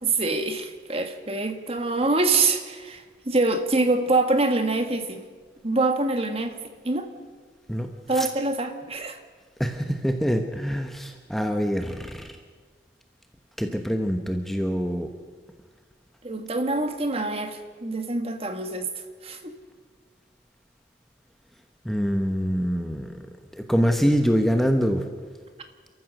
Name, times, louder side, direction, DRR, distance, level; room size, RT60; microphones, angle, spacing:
voice 1, 0.0-5.2 5.6-6.6 6.8-7.1 8.1-9.2 16.2-18.9 19.2-19.6, right 3 dB, 35° right, 7 dB, 1.7 m, -25 dB
voice 2, 9.6-12.3 13.6-15.1 21.8-23.1 23.5-25.0, equal, ahead, 4 dB, 1.1 m, -25 dB
29.0 x 14.0 x 6.6 m, 1.5 s
head